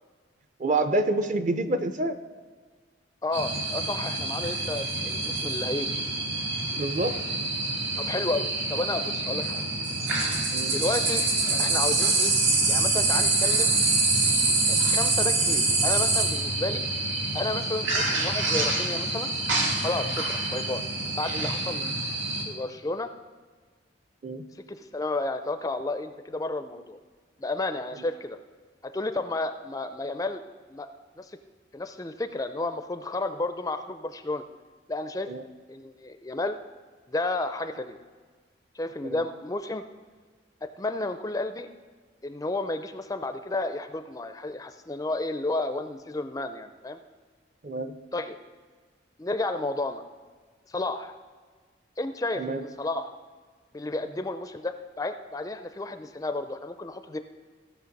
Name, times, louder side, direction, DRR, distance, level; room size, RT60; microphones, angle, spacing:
voice 1, 0.6-2.2 6.7-7.2 10.5-10.7 24.2-24.5 27.9-28.0 35.3-35.4 39.0-39.3 47.6-48.0 52.4-52.6, right 2 dB, 40° right, 10 dB, 0.6 m, -27 dB
voice 2, 3.2-5.9 8.0-9.6 10.7-11.2 11.6-12.3 12.7-13.7 14.7-16.8 17.3-19.3 19.8-20.8 21.1-21.9 22.5-23.1 24.7-27.0 27.4-28.4 28.8-30.4 30.7-30.9 31.2-31.4 31.7-34.4 34.9-35.3 35.7-36.6 37.1-38.0 38.7-39.8 40.8-41.7 42.2-47.0 48.1-48.4 49.2-50.0 50.7-51.2 52.0-53.2 53.7-57.2, left 2 dB, 20° left, 9 dB, 0.4 m, -32 dB
sound 1, 3.3-22.4, right 2 dB, 90° right, 2.2 m, -26 dB
15.5 x 6.3 x 5.2 m, 1.5 s
head